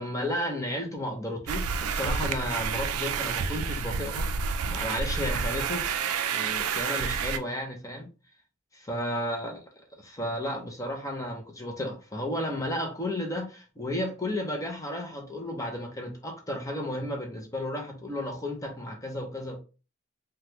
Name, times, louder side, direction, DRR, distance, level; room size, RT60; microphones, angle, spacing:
voice 1, 0.0-4.3 4.7-5.8 6.3-8.1 8.9-9.6 10.0-19.6, left 1 dB, 15° left, 0.6 m, -33 dB
sound 1, 1.5-7.4, right 6 dB, 85° right, 0.4 m, -29 dB
3.5 x 2.3 x 2.9 m
head